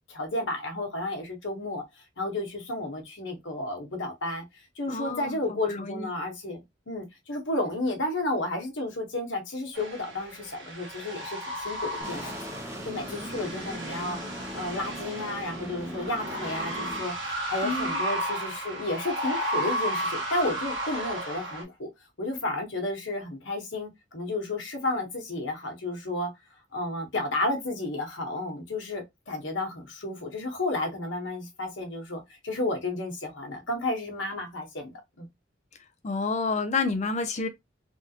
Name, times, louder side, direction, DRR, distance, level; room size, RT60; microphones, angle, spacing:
voice 1, 0.1-1.8 2.2-6.6 6.9-12.4 12.9-14.2 14.5-17.1 17.5-21.9 22.2-26.3 26.7-35.3, left 2 dB, 75° left, 1.1 m, -32 dB
voice 2, 4.9-6.1 17.6-18.0 36.0-37.5, left 4 dB, 40° left, 0.5 m, -29 dB
sound 1, 9.7-21.6, right 1 dB, 85° right, 1.4 m, -34 dB
sound 2, 12.0-17.0, equal, 15° right, 0.7 m, -39 dB
3.5 x 2.4 x 2.8 m
head